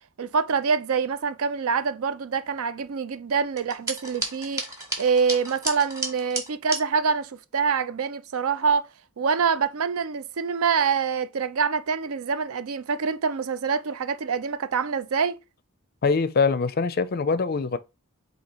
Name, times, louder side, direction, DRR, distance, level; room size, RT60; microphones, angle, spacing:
voice 1, 0.2-4.6 5.0-8.9 9.2-15.4, right 5 dB, 75° right, 0.5 m, -25 dB
sound 1, 3.6-6.8, right 2 dB, 15° right, 1.0 m, -32 dB
voice 2, 16.0-17.8, left 4 dB, 45° left, 0.4 m, -23 dB
4.2 x 2.8 x 4.3 m
head